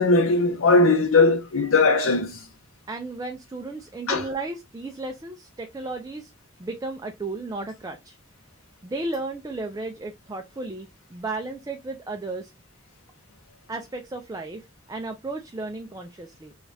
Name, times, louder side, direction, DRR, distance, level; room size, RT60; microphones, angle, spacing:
voice 1, 0.0-2.4 4.1-4.2, left 3 dB, 75° left, 0.6 m, -19 dB
voice 2, 2.9-6.3 6.6-8.2 8.8-12.5 13.7-16.5, right 2 dB, 15° right, 0.3 m, -34 dB
5.0 x 2.3 x 2.6 m
head